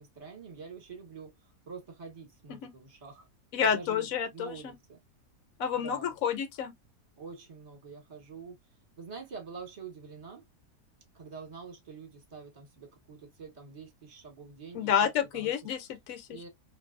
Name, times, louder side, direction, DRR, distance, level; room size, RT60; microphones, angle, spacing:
voice 1, 0.0-1.3 1.7-3.3 3.6-5.0 5.7-6.1 7.2-8.6 9.0-10.5 11.1-15.5 16.3-16.5, right 5 dB, 30° right, 1.2 m, -46 dB
voice 2, 3.5-4.7 5.6-6.7 14.7-16.4, left 8 dB, 65° left, 1.1 m, -29 dB
3.1 x 2.6 x 2.5 m
omnidirectional pair, 1.7 m